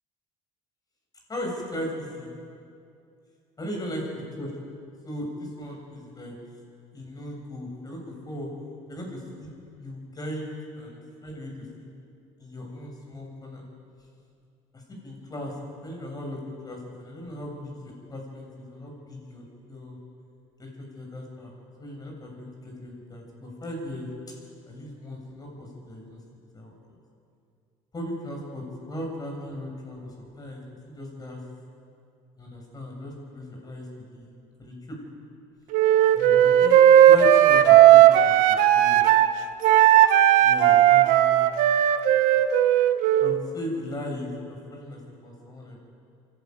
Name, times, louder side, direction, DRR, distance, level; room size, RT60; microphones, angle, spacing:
voice 1, 1.3-2.3 3.6-4.0 4.4-4.5 5.0-6.3 6.9-8.5 8.9-9.5 9.8-10.5 10.8-11.6 12.4-13.6 14.7-15.5 15.8-20.0 20.6-20.7 20.9-21.5 21.8-24.1 24.7-26.2 26.5-26.7 27.9-31.4 32.4-34.3 34.6-35.0 36.1-36.8 37.1-38.3 38.7-39.1 40.4-41.5 43.2-45.8, left 1 dB, 25° left, 0 dB, 7.3 m, -37 dB
Wind instrument woodwind instrument, 35.7-39.3 39.6-43.4, right 11 dB, 75° right, 1.1 m, -16 dB
25.5 x 12.0 x 9.4 m, 2.5 s
supercardioid pair, 95°, 14 cm